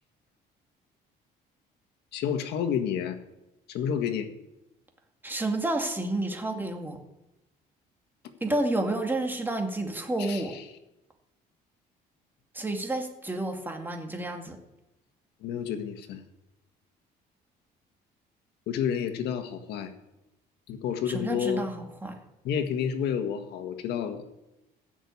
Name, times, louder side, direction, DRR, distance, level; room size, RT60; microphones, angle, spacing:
voice 1, 2.1-3.2 3.7-4.3 10.2-10.6 15.4-16.2 18.7-19.9 20.7-21.7 22.4-24.2, left 8 dB, 80° left, 7 dB, 1.6 m, -30 dB
voice 2, 5.2-7.0 8.4-10.5 12.5-14.6 21.1-22.2, right 2 dB, 10° right, 3 dB, 2.3 m, -30 dB
15.0 x 6.3 x 8.5 m, 0.93 s
cardioid pair, 110°, 17 cm